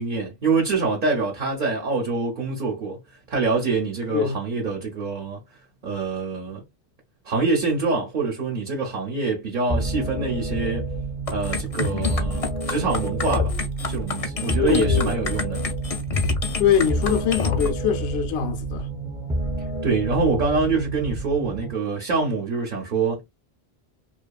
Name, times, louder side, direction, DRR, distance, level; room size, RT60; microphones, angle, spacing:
voice 1, 0.0-3.0 3.3-5.4 5.8-6.6 7.3-10.9 11.3-13.5 13.9-15.6 19.8-23.2, right 4 dB, 55° right, 0.9 m, -25 dB
voice 2, 4.1-4.4 14.6-15.2 16.6-18.9, left 8 dB, 75° left, 0.8 m, -23 dB
sound 1, 9.7-21.7, right 2 dB, 5° right, 0.5 m, -29 dB
sound 2, 11.3-17.7, left 4 dB, 45° left, 0.5 m, -27 dB
2.7 x 2.3 x 2.2 m
omnidirectional pair, 1.0 m